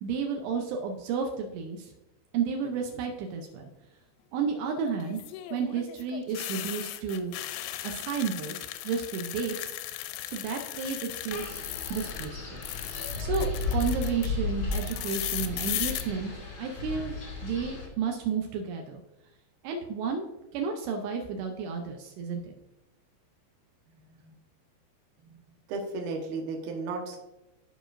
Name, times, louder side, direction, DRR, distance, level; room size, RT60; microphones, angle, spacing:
voice 1, 0.0-1.9 2.3-3.7 4.3-5.2 5.5-7.3 7.8-8.6 8.8-9.7 10.2-11.6 11.9-12.6 12.9-16.3 16.6-17.2 17.4-19.0 19.6-20.3 20.5-22.5, right 6 dB, 90° right, 2 dB, 2.4 m, -32 dB
sound 1, 2.6-3.1 5.0-12.3 12.6-14.3 14.7-16.0, left 14 dB, 85° left, 3.2 m, -37 dB
Wind, 11.3-17.9, left 3 dB, 60° left, 1.3 m, -34 dB
voice 2, 25.7-27.2, right 3 dB, 75° right, 1 dB, 2.2 m, -34 dB
14.0 x 5.0 x 2.5 m, 0.97 s
omnidirectional pair, 5.8 m